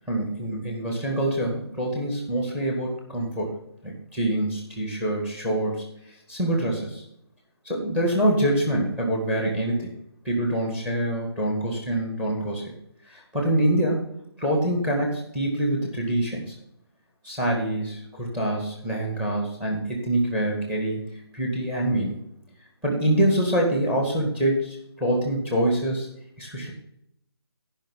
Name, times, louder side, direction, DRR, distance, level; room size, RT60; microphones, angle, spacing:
voice 1, 0.1-3.6 3.8-5.8 6.3-7.0 7.6-9.9 10.2-12.7 13.1-14.0 14.4-16.5 17.2-22.1 22.8-26.1 26.4-26.7, right 1 dB, 5° right, 0 dB, 2.1 m, -25 dB
17.0 x 5.9 x 3.7 m, 0.77 s
figure-of-eight pair, 150°, 14 cm